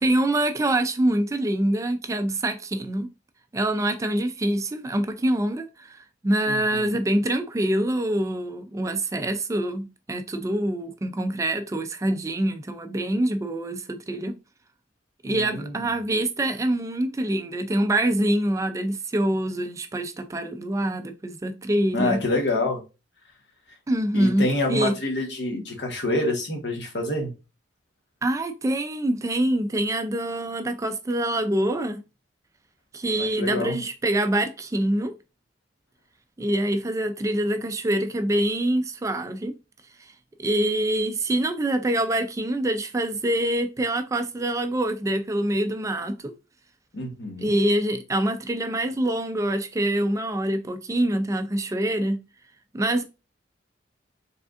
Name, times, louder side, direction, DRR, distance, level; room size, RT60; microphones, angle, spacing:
voice 1, 0.0-3.1 3.5-14.4 15.2-22.2 23.9-25.0 28.2-32.0 32.9-35.1 36.4-39.5 40.4-46.3 47.4-52.2 52.7-53.0, right 1 dB, 15° right, 0.3 m, -25 dB
voice 2, 6.5-7.0 15.2-15.8 21.9-22.8 24.1-27.3 33.2-33.8 46.9-47.5, left 2 dB, 65° left, 1.2 m, -27 dB
4.9 x 3.4 x 2.4 m
head